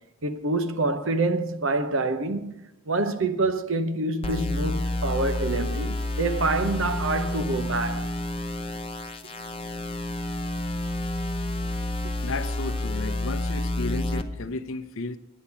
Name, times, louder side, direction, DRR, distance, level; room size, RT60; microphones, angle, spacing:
voice 1, 0.2-2.5 2.9-8.1, right 2 dB, 65° right, 0.8 m, -26 dB
sound 1, 4.2-14.2, left 1 dB, 25° left, 0.7 m, -29 dB
voice 2, 12.2-15.2, left 3 dB, 70° left, 0.7 m, -33 dB
10.0 x 9.7 x 5.8 m
head